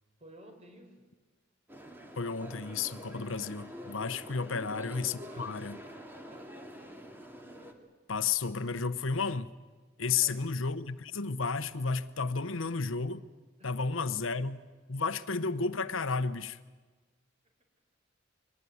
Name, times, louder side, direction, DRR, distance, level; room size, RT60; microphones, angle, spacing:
voice 1, 0.2-1.0 4.3-4.6 5.3-5.6 6.2-7.0 10.0-10.5 13.6-14.0 17.4-17.5, right 1 dB, 35° right, 4.3 m, -55 dB
sound 1, 1.7-7.7, equal, 10° right, 2.2 m, -46 dB
voice 2, 2.2-5.8 8.1-9.5 10.0-13.2 13.6-14.6 14.9-16.6, left 4 dB, 90° left, 1.0 m, -32 dB
23.0 x 19.5 x 9.5 m
head